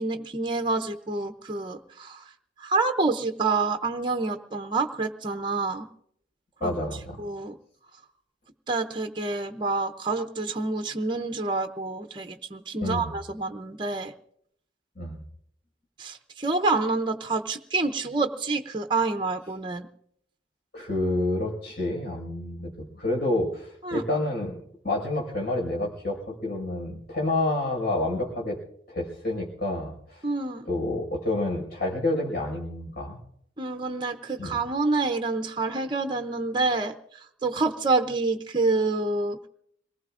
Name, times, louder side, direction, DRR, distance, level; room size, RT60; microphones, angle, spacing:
voice 1, 0.0-2.2 2.6-5.9 6.6-6.7 7.2-7.5 8.7-14.1 16.0-19.9 23.8-24.0 30.2-30.7 33.6-39.5, right 3 dB, 25° right, 7 dB, 0.7 m, -27 dB
voice 2, 6.6-7.2 12.8-13.1 15.0-15.2 20.7-22.7 22.9-28.6 28.9-30.3 30.6-33.2 34.4-34.6, left 2 dB, 55° left, -1 dB, 5.4 m, -29 dB
26.5 x 19.0 x 2.5 m, 0.70 s
head